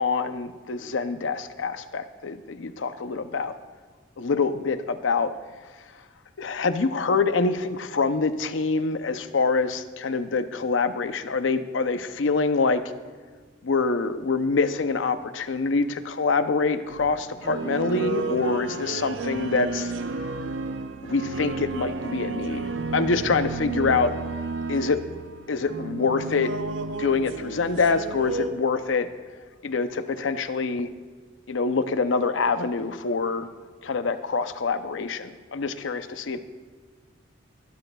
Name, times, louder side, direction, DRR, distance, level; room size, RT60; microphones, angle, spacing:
voice 1, 0.0-3.5 4.2-5.3 6.4-12.8 13.6-19.9 21.0-24.1 24.7-25.0 25.5-26.5 27.0-29.1 29.6-30.9 31.5-33.5 33.8-36.4, left 4 dB, 65° left, 11 dB, 0.6 m, -25 dB
sound 1, 16.9-28.5, right 3 dB, 70° right, 0.6 m, -32 dB
21.0 x 12.0 x 2.3 m, 1.5 s
head